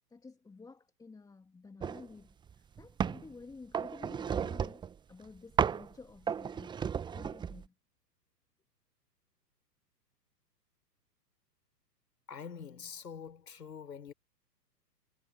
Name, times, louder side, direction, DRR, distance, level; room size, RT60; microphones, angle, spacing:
voice 1, 0.1-6.8 7.1-7.7, left 4 dB, 5° left, 2.7 m, -52 dB
sound 1, 1.8-2.1 2.5-3.3 3.7-4.9 5.6-5.9 6.3-7.6, right 7 dB, 10° right, 0.9 m, -33 dB
voice 2, 12.3-14.1, left 7 dB, 70° left, 4.1 m, -45 dB
figure-of-eight pair, 110°, 50 cm